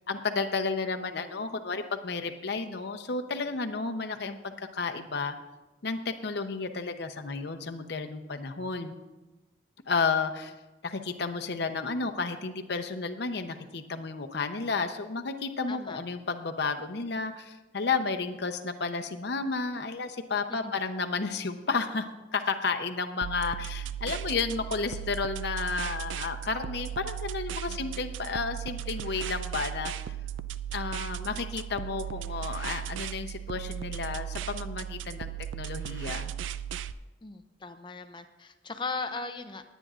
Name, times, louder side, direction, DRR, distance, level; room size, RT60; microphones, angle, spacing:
voice 1, 0.1-5.4 5.8-9.0 9.9-10.5 10.8-22.1 22.3-29.9 30.7-36.3, left 4 dB, 55° left, 6 dB, 0.7 m, -32 dB
voice 2, 15.7-16.0 20.6-20.7 27.7-28.0 37.2-39.6, left 4 dB, 25° left, 8 dB, 0.6 m, -38 dB
sound 1, 23.2-36.9, right 10 dB, 75° right, 0.3 m, -36 dB
20.0 x 9.2 x 2.5 m, 1.1 s
head